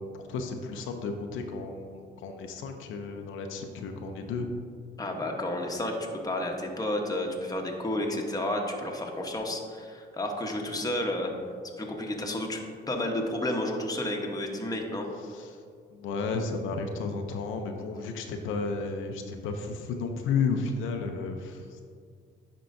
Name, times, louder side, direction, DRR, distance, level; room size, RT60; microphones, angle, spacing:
voice 1, 0.3-4.5 10.6-10.8 15.2-15.6 15.9-21.8, left 4 dB, 85° left, 4 dB, 0.6 m, -33 dB
voice 2, 5.0-11.3 11.8-15.1, left 1 dB, 20° left, 1 dB, 1.0 m, -31 dB
10.5 x 4.5 x 2.6 m, 2.2 s
cardioid pair, 90°, 20 cm